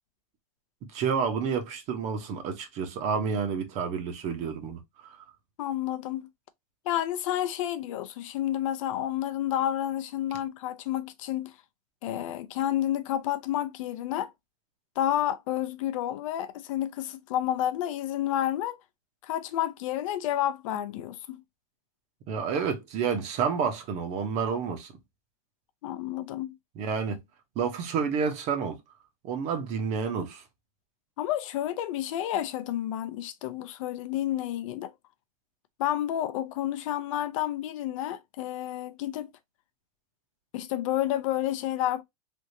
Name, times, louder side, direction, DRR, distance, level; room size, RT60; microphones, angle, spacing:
voice 1, 0.9-5.2 22.3-24.9 26.8-27.2 27.6-28.8 29.2-30.4, right 6 dB, 35° right, 0.9 m, -29 dB
voice 2, 5.6-6.3 6.9-11.5 12.0-14.3 15.0-18.8 19.2-21.4 25.8-26.6 31.2-34.9 35.8-39.3 40.5-42.0, left 12 dB, 60° left, 0.5 m, -30 dB
3.4 x 2.7 x 2.6 m
supercardioid pair, 150°, 19 cm